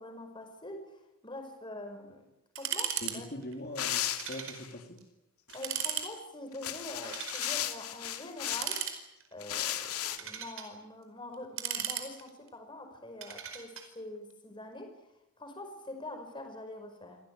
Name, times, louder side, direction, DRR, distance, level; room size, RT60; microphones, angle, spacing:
voice 1, 0.0-2.2 2.6-3.3 5.5-8.8 9.3-15.0 15.4-17.2, left 1 dB, 20° left, 5 dB, 5.3 m, -44 dB
sound 1, 2.6-3.2 3.4-3.5 4.2-4.6 5.0-5.1 5.5-6.1 7.0-7.6 8.5-9.3 9.9-10.7 11.3-12.5 13.2-13.9, right 9 dB, 60° right, 4.9 m, -36 dB
voice 2, 3.0-5.0, left 1 dB, 45° left, 2 dB, 3.4 m, -42 dB
sound 2, 3.7-4.7 5.5-6.0 6.5-8.9 9.4-10.2, left 11 dB, 90° left, 2.3 m, -35 dB
26.5 x 17.0 x 9.7 m, 0.88 s
head